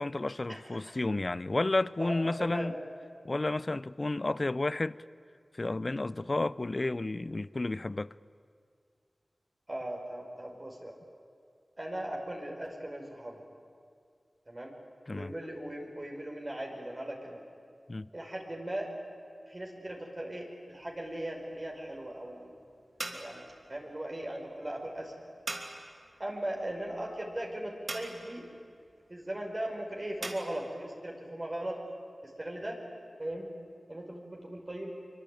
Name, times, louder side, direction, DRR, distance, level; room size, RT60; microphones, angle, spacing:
voice 1, 0.0-2.7 3.2-5.0 5.6-8.1 15.1-15.3 17.9-18.1, left 2 dB, 50° left, 0.6 m, -31 dB
voice 2, 2.0-2.7 9.7-11.0 11.8-13.4 14.5-14.7 15.1-17.4 18.1-18.9 19.5-22.5 23.0-23.4 23.7-25.1 26.2-28.5 29.1-31.8 32.2-32.8 33.2-33.5 33.9-34.9, right 1 dB, 40° right, 5.2 m, -38 dB
sound 1, 20.7-30.4, right 2 dB, 70° right, 3.1 m, -45 dB
24.0 x 24.0 x 9.3 m
cardioid pair, 40°, 0 cm